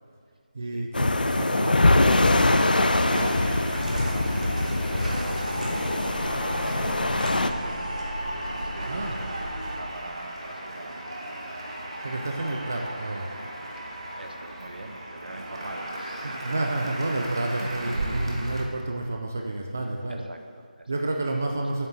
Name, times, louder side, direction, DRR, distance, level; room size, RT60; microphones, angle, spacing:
voice 1, 0.5-1.8 3.1-3.4 8.9-9.2 12.0-13.3 16.4-20.3 20.9-21.9, right 2 dB, 15° right, 2 dB, 0.3 m, -30 dB
sound 1, 0.9-7.5, left 2 dB, 70° left, 0.8 m, -23 dB
voice 2, 1.3-2.5 2.9-11.5 14.2-16.4 17.6-17.7 18.6-18.7 20.1-20.9 21.4-21.5, right 2 dB, 80° right, 6 dB, 1.2 m, -43 dB
sound 2, 1.7-18.6, right 1 dB, 35° right, 1.3 m, -36 dB
sound 3, 3.7-9.8, equal, 55° right, 2.9 m, -35 dB
8.5 x 6.8 x 7.7 m, 2.2 s
figure-of-eight pair, 180°, 5 cm